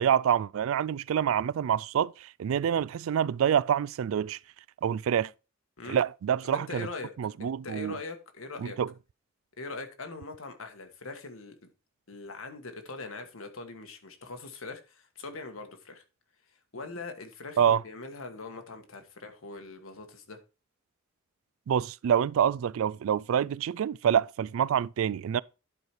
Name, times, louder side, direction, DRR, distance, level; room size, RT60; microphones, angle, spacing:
voice 1, 0.0-4.4 4.8-5.3 5.9-6.9 7.2-8.0 8.6-8.9 17.6-17.8 21.7-25.4, right 9 dB, 80° right, 0.3 m, -26 dB
voice 2, 6.4-7.1 7.4-8.8 9.6-11.6 12.1-16.0 16.7-20.4, left 3 dB, 85° left, 1.5 m, -41 dB
11.0 x 4.8 x 4.5 m
head